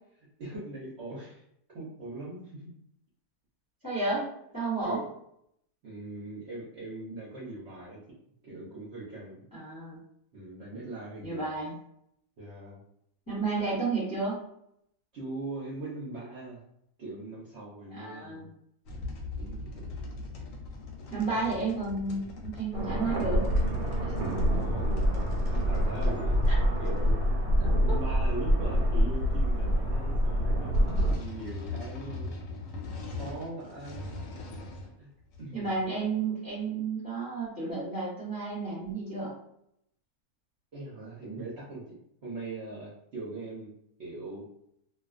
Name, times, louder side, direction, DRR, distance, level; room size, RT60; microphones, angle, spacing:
voice 1, 0.4-1.4 1.7-2.6 4.8-5.1 5.8-8.0 8.4-9.5 10.3-11.5 12.4-12.8 15.1-16.6 17.0-18.5 18.9-19.1 19.4-20.0 21.4-21.5 24.3-26.4 26.8-30.7 31.0-32.3 33.1-34.2 35.0-35.1 35.4-35.8 40.7-42.0 42.2-43.7 44.0-44.5, right 2 dB, 55° right, -7 dB, 0.8 m, -41 dB
voice 2, 3.8-4.3 4.5-5.0 9.5-10.0 11.2-11.8 13.3-14.4 17.9-18.5 21.1-23.5 24.0-24.1 26.5-26.6 27.6-28.0 35.5-39.3, right 3 dB, 20° left, -9 dB, 0.7 m, -32 dB
sound 1, 18.9-27.1 30.7-34.9 35.3-35.9, left 3 dB, 70° left, 0.9 m, -41 dB
sound 2, 22.7-31.2, equal, 80° right, 1.1 m, -26 dB
2.4 x 2.2 x 2.4 m, 0.74 s
omnidirectional pair, 1.6 m